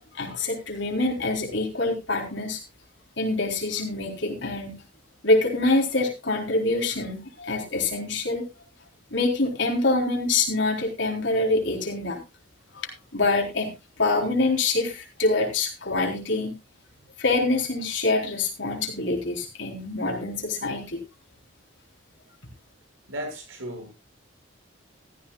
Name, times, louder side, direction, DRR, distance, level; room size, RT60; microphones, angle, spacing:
voice 1, 0.1-2.6 3.2-4.8 5.2-8.5 9.1-12.2 12.7-13.7 14.0-16.5 17.2-21.0, left 2 dB, 65° left, 2 dB, 3.9 m, -25 dB
voice 2, 23.1-23.9, equal, 85° right, 4 dB, 6.4 m, -35 dB
15.5 x 14.0 x 2.3 m, 0.25 s
head